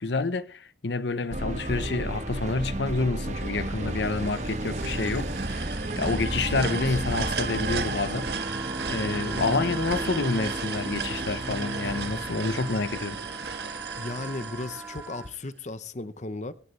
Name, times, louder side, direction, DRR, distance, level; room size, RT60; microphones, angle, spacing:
voice 1, 0.0-8.5 8.8-13.2, left 3 dB, 80° left, 0.9 m, -29 dB
sound 1, 1.3-14.1, right 1 dB, 40° right, 1.2 m, -33 dB
sound 2, 3.4-15.5, right 5 dB, 65° right, 1.6 m, -35 dB
voice 2, 6.6-7.0 14.0-16.5, left 2 dB, 40° left, 0.8 m, -36 dB
sound 3, 8.1-15.3, right 3 dB, 10° right, 0.7 m, -43 dB
24.5 x 11.0 x 3.2 m
head